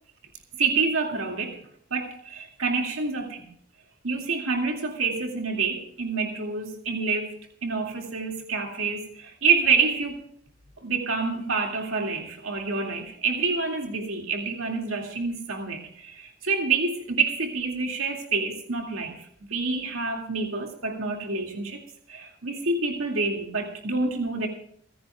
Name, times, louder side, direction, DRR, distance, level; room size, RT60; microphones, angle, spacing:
voice 1, 0.6-1.6 1.9-3.5 4.0-10.2 10.8-21.8 22.1-24.5, right 4 dB, 80° right, 2 dB, 2.2 m, -27 dB
30.0 x 10.0 x 2.3 m, 0.65 s
head